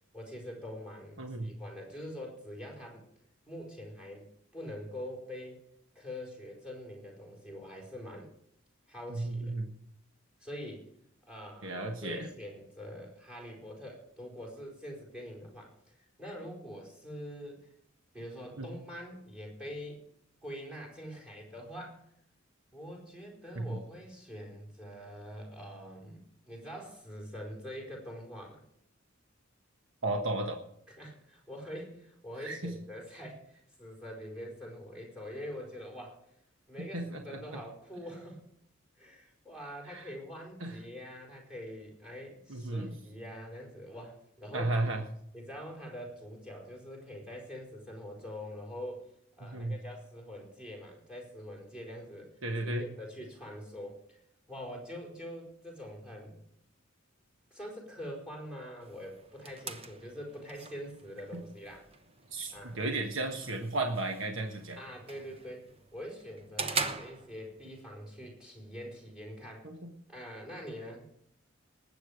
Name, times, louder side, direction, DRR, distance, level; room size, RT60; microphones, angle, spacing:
voice 1, 0.1-3.0 3.5-4.3 4.5-5.6 5.9-8.3 8.9-9.6 10.4-10.9 11.3-17.7 18.1-20.0 20.4-22.0 22.7-28.6 30.9-36.2 36.7-38.5 39.0-44.7 45.3-49.1 49.4-52.4 52.6-54.2 54.5-56.4 57.5-61.9 62.5-62.8 64.8-69.7 70.1-71.1, equal, 5° right, -2 dB, 4.8 m, -44 dB
voice 2, 1.2-1.5 9.1-9.7 11.6-12.3 18.6-18.7 23.5-23.8 30.0-30.6 32.4-32.7 36.8-37.4 39.9-40.0 40.6-40.8 42.5-42.9 44.5-45.0 49.4-49.7 52.4-52.8 61.3-61.4 62.3-64.8 69.6-69.9, right 2 dB, 65° right, 3 dB, 1.4 m, -34 dB
sound 1, 58.8-67.8, right 4 dB, 30° right, 0.9 m, -42 dB
19.5 x 8.7 x 5.0 m, 0.72 s
head